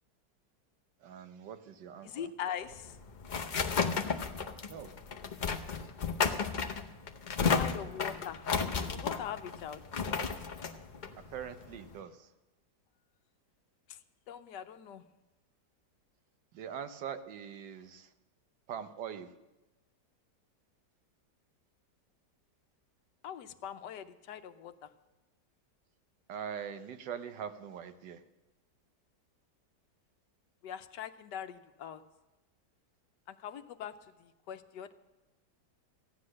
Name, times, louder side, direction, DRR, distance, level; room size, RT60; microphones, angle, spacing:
voice 1, 1.0-2.3 4.7-4.9 11.3-12.3 16.5-18.1 18.7-19.3 26.3-28.2, right 8 dB, 85° right, 10 dB, 1.5 m, -42 dB
voice 2, 2.0-3.0 7.5-8.4 8.9-9.8 13.9-14.0 14.3-15.0 23.2-24.7 30.6-32.0 33.3-33.9 34.2-34.9, left 9 dB, 80° left, 11 dB, 1.3 m, -42 dB
sound 1, 2.7-12.0, left 5 dB, 50° left, 0.5 m, -33 dB
14.5 x 9.8 x 6.4 m, 1.0 s
omnidirectional pair, 1.8 m